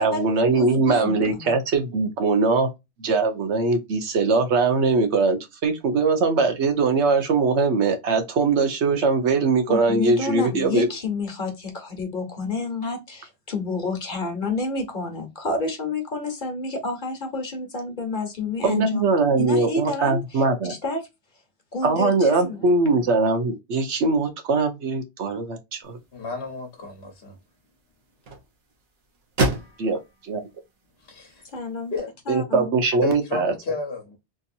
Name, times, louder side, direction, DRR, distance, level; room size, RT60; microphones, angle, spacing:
voice 1, 0.0-2.7 3.0-10.9 18.6-20.7 21.8-26.0 29.8-30.0 30.3-30.4 32.3-33.5, right 3 dB, 90° right, 1.2 m, -21 dB
voice 2, 0.5-1.5 9.7-20.4 20.7-21.1 21.7-22.6 22.9-23.0 31.4-32.0 32.3-32.7, left 3 dB, 45° left, 1.2 m, -30 dB
sound 1, 25.8-32.0, right 2 dB, 65° right, 1.2 m, -33 dB
voice 3, 26.1-27.4 31.0-31.5 31.9-32.1 33.0-34.2, left 4 dB, 70° left, 1.2 m, -32 dB
3.6 x 2.7 x 2.5 m
omnidirectional pair, 1.1 m